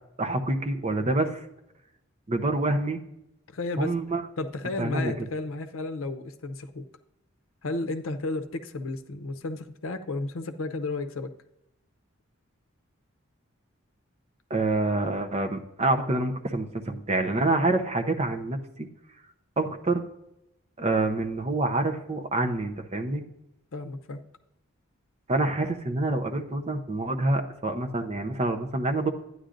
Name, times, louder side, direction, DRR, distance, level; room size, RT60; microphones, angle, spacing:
voice 1, 0.2-1.4 2.3-3.0 3.8-4.2 4.8-5.1 14.5-18.9 19.6-20.0 20.8-23.2 25.3-29.1, right 2 dB, 35° right, 5 dB, 0.7 m, -27 dB
voice 2, 3.5-3.9 4.4-6.8 7.6-11.3 23.7-24.2, left 2 dB, 90° left, 8 dB, 0.6 m, -33 dB
11.5 x 9.5 x 2.5 m, 0.87 s
head